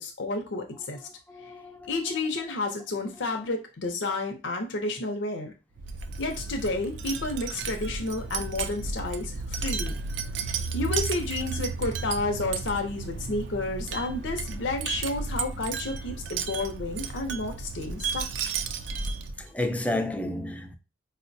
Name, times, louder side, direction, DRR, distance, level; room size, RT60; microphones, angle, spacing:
voice 1, 0.0-1.0 1.9-5.5 6.2-9.9 10.5-18.3, left 3 dB, 90° left, 0.6 m, -31 dB
voice 2, 0.9-2.2 19.4-20.7, left 1 dB, 10° left, 0.3 m, -32 dB
Wind chime, 5.8-19.5, right 5 dB, 75° right, 0.4 m, -33 dB
4.3 x 2.1 x 2.5 m
head